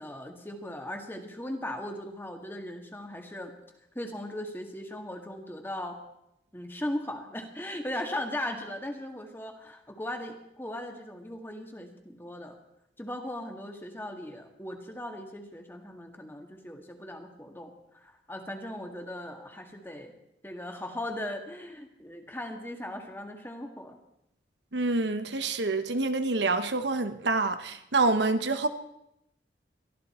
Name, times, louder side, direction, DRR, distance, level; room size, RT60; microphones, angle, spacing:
voice 1, 0.0-3.5 3.9-6.0 6.5-12.6 13.0-20.1 20.4-24.0, left 1 dB, 10° left, 4 dB, 1.8 m, -38 dB
voice 2, 24.7-28.7, right 3 dB, 80° right, 9 dB, 1.1 m, -27 dB
22.5 x 13.5 x 4.4 m, 0.83 s
head